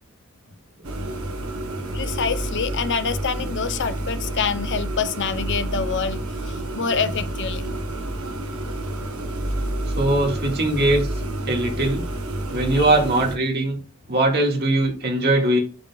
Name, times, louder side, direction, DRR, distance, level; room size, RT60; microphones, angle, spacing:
sound 1, 0.8-13.4, right 1 dB, 85° right, 1.2 m, -29 dB
voice 1, 1.9-7.8 12.7-12.9, left 6 dB, 55° left, 0.7 m, -26 dB
voice 2, 9.9-11.1 11.5-12.1 12.5-13.8 14.1-15.6, right 2 dB, 50° right, 2.0 m, -20 dB
11.5 x 4.0 x 2.4 m
head